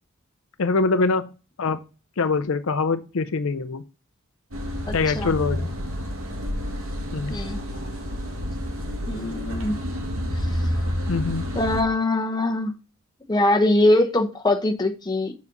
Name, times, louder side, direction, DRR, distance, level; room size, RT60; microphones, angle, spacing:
voice 1, 0.6-1.3 1.6-1.8 2.2-3.8 4.9-5.7 7.1-7.3 11.1-11.5, left 4 dB, 70° left, 0.6 m, -23 dB
sound 1, 4.5-11.8, equal, 75° right, 2.0 m, -29 dB
voice 2, 4.9-5.3 7.3-7.6 9.1-9.8 11.5-12.7 13.2-15.3, left 1 dB, 20° left, 1.0 m, -22 dB
7.2 x 4.1 x 5.3 m
head